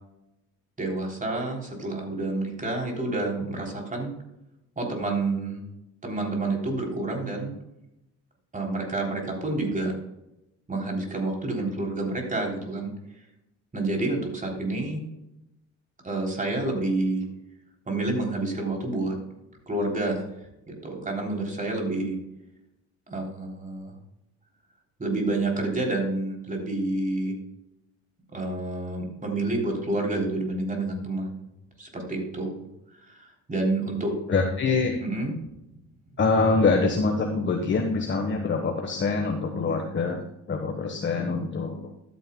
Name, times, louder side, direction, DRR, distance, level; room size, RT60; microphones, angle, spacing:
voice 1, 0.8-4.1 4.8-5.6 6.0-7.5 8.5-9.9 10.7-12.9 13.7-15.0 16.0-17.2 17.9-19.2 19.7-20.2 20.7-22.2 23.1-24.0 25.0-27.3 28.3-31.4 31.8-32.6 33.1-34.1 35.0-35.3, right 2 dB, 25° right, 0 dB, 3.5 m, -29 dB
voice 2, 34.3-34.9 36.2-40.2 40.5-41.9, left 4 dB, 40° left, 3 dB, 1.3 m, -24 dB
13.0 x 9.1 x 2.3 m, 0.87 s
cardioid pair, 90°, 30 cm